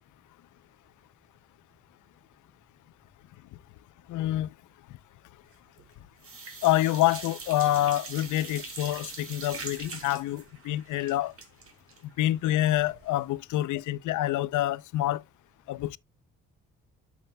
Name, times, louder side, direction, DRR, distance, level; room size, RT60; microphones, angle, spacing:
voice 1, 4.1-4.5 6.6-11.3 12.2-15.2 15.7-16.0, left 14 dB, 80° left, 0.6 m, -27 dB
sound 1, 5.5-5.9 6.2-13.1 13.4-13.5 13.8-13.9, right 4 dB, 50° right, 2.6 m, -43 dB
10.5 x 6.2 x 2.2 m
cardioid pair, 90°, 30 cm